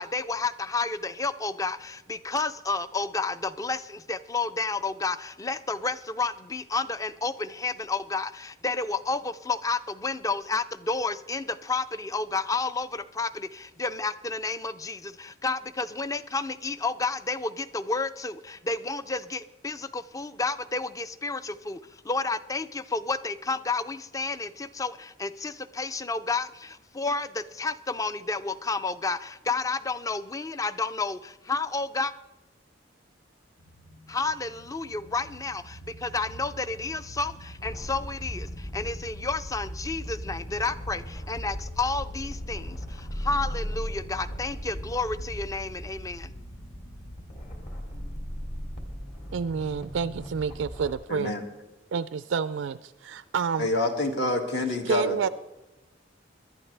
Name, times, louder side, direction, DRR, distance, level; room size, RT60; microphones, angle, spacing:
voice 1, 0.0-32.1 34.1-46.3, left 3 dB, 15° left, 14 dB, 0.4 m, -31 dB
sound 1, 33.6-50.6, equal, 80° left, 1.1 m, -44 dB
sound 2, 37.7-50.9, equal, 40° left, 2.5 m, -38 dB
voice 2, 49.3-51.4 51.9-53.7 54.9-55.3, right 6 dB, 75° right, 15 dB, 0.4 m, -29 dB
voice 3, 51.1-51.4 53.6-55.3, left 2 dB, 60° left, 3 dB, 2.1 m, -27 dB
21.5 x 11.5 x 3.3 m, 1.0 s
head